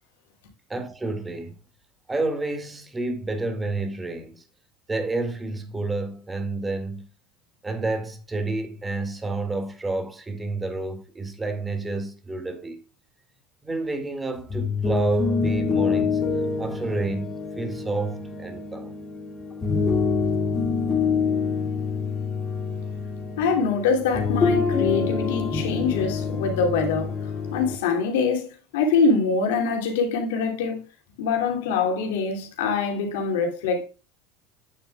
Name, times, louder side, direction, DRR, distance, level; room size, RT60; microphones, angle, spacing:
voice 1, 0.7-1.6 2.1-4.4 4.9-7.1 7.6-12.8 13.6-16.2 16.6-19.0, right 3 dB, 15° right, 2.0 m, -29 dB
sound 1, 14.4-27.7, left 5 dB, 30° left, 2.4 m, -26 dB
voice 2, 23.4-27.2 27.5-30.8 31.2-33.8, left 4 dB, 80° left, 2.6 m, -24 dB
9.2 x 7.1 x 2.3 m
supercardioid pair, 100°, 0 cm